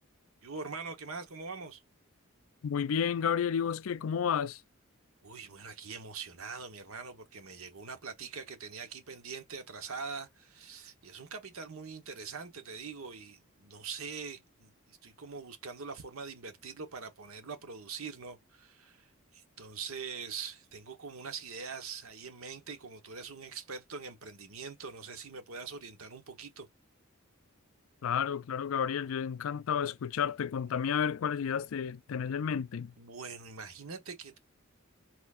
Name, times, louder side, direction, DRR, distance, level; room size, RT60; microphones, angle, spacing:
voice 1, 0.4-1.8 5.2-26.7 33.0-34.4, right 5 dB, 85° right, 1.1 m, -43 dB
voice 2, 2.6-4.6 28.0-32.9, left 7 dB, 75° left, 0.4 m, -31 dB
4.4 x 4.3 x 2.4 m
head